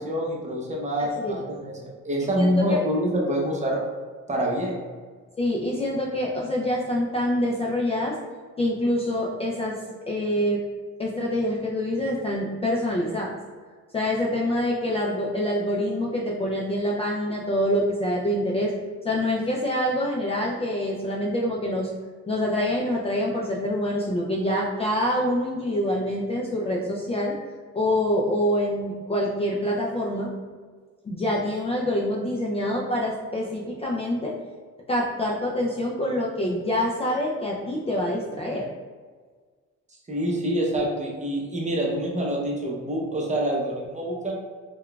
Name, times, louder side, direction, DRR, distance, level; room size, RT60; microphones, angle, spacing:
voice 1, 0.0-1.8 2.0-3.8 4.3-4.9 40.1-44.4, equal, 25° right, -2 dB, 0.7 m, -26 dB
voice 2, 1.0-1.4 2.4-2.8 5.4-8.2 8.6-9.8 10.1-10.6 11.0-13.3 13.9-18.7 19.0-21.9 22.3-27.3 27.7-30.3 31.1-34.3 34.9-38.7, left 1 dB, 20° left, -3 dB, 0.4 m, -26 dB
3.6 x 2.3 x 2.3 m, 1.5 s
cardioid pair, 90°, 30 cm